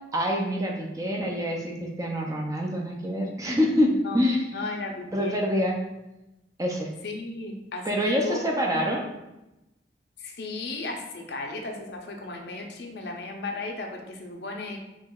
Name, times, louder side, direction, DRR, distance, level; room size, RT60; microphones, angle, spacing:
voice 1, 0.1-4.4 5.1-5.7 6.6-6.9 7.9-9.1, equal, 20° right, 0 dB, 0.4 m, -26 dB
voice 2, 3.8-4.2 4.5-5.4 7.0-9.0 10.2-14.8, left 2 dB, 65° left, 2 dB, 0.5 m, -35 dB
4.4 x 2.9 x 2.3 m, 0.96 s
head